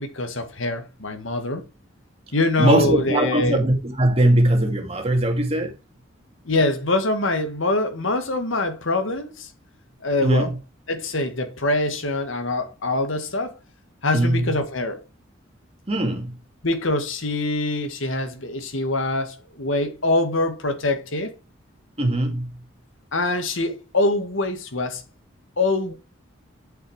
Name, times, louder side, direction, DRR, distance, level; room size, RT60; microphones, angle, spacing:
voice 1, 0.0-1.6 2.3-3.6 6.4-9.5 10.0-10.5 10.9-13.5 14.0-15.0 16.6-21.3 23.1-25.0 25.6-25.9, left 2 dB, 75° left, 1.8 m, -24 dB
voice 2, 2.6-5.7 10.2-10.6 14.1-14.5 15.9-16.4 22.0-22.5, right 1 dB, 30° right, 2.3 m, -20 dB
7.9 x 6.6 x 4.8 m
head